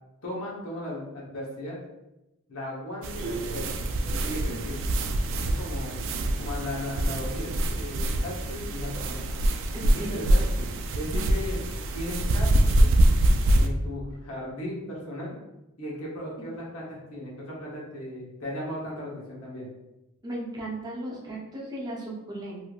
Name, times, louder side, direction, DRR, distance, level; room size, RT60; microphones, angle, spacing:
voice 1, 0.2-1.8 2.5-3.7 4.1-4.9 5.4-6.1 6.4-9.3 9.8-11.6 11.9-12.5 12.8-12.9 13.5-15.3 15.8-19.7, left 1 dB, 75° left, -4 dB, 1.1 m, -36 dB
sound 1, 3.0-13.7, right 1 dB, 60° right, 0.3 m, -25 dB
voice 2, 9.7-10.2 16.4-16.5 20.2-22.6, right 1 dB, 20° right, -4 dB, 0.8 m, -36 dB
3.1 x 2.7 x 2.4 m, 0.93 s
head